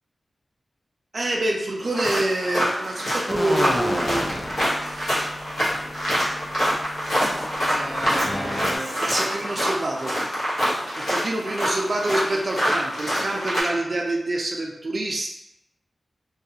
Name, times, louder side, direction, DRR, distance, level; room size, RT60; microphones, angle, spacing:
voice 1, 1.1-4.3 4.8-5.4 7.7-10.1 10.9-15.3, right 2 dB, 45° right, -1 dB, 0.4 m, -27 dB
sound 1, 1.8-13.6, equal, 85° left, 0.9 m, -26 dB
sound 2, 3.3-8.8, left 1 dB, 25° left, 0.4 m, -32 dB
2.3 x 2.2 x 2.7 m, 0.84 s
wide cardioid pair, 115°, 0 cm